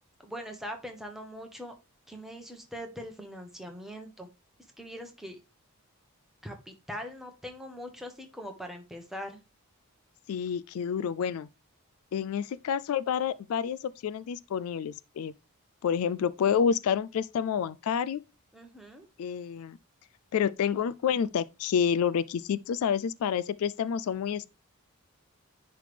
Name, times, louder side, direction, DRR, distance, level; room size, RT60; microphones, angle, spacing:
voice 1, 0.2-1.7 2.1-4.3 4.8-5.4 6.4-9.4 18.5-19.1, equal, ahead, 1.1 m, -41 dB
voice 2, 10.3-11.5 12.1-15.3 15.8-18.2 19.2-19.8 20.3-24.5, left 7 dB, 70° left, 0.3 m, -29 dB
10.0 x 3.4 x 3.3 m
head